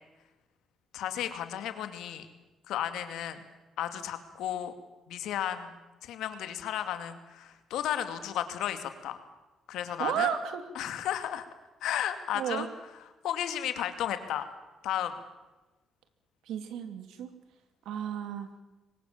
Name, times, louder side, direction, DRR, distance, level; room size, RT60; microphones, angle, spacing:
voice 1, 0.9-2.3 2.7-3.4 3.8-4.7 5.1-5.7 6.0-9.2 9.7-10.3 10.7-11.4 11.8-12.7 13.2-14.5 14.8-15.1, left 10 dB, 85° left, 9 dB, 2.4 m, -33 dB
voice 2, 10.0-10.6 12.3-12.7 16.5-17.3 17.9-18.5, right 9 dB, 85° right, 9 dB, 2.6 m, -32 dB
23.5 x 20.0 x 7.4 m, 1.1 s
cardioid pair, 90°, 0 cm